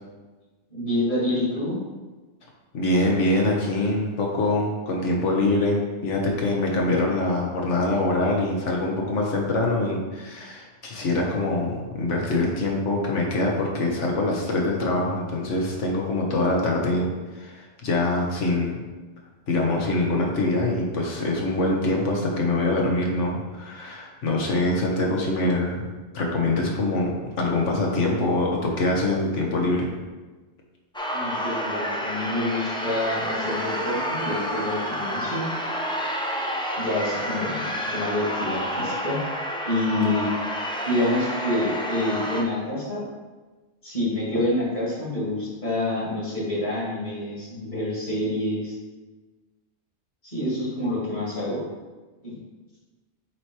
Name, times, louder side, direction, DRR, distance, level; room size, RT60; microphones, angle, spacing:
voice 1, 0.7-1.8 31.1-35.4 36.8-39.2 39.6-40.3 40.9-43.0 43.8-48.7 50.2-51.6 52.2-52.4, left 1 dB, 40° left, -6 dB, 2.2 m, -27 dB
voice 2, 2.7-17.1 17.3-18.8 19.5-25.8 26.1-29.9, left 2 dB, 80° left, -1 dB, 1.5 m, -24 dB
sound 1, 30.9-42.4, equal, 10° left, 0.3 m, -29 dB
7.4 x 3.0 x 4.7 m, 1.3 s
omnidirectional pair, 1.2 m